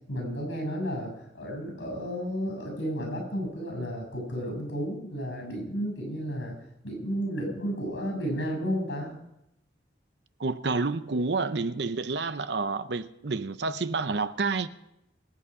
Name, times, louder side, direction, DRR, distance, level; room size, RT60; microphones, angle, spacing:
voice 1, 0.1-6.5 6.8-9.2, equal, 80° left, 6.9 m, -32 dB
voice 2, 10.4-14.7, right 3 dB, 65° right, 0.7 m, -29 dB
24.0 x 8.6 x 4.9 m
head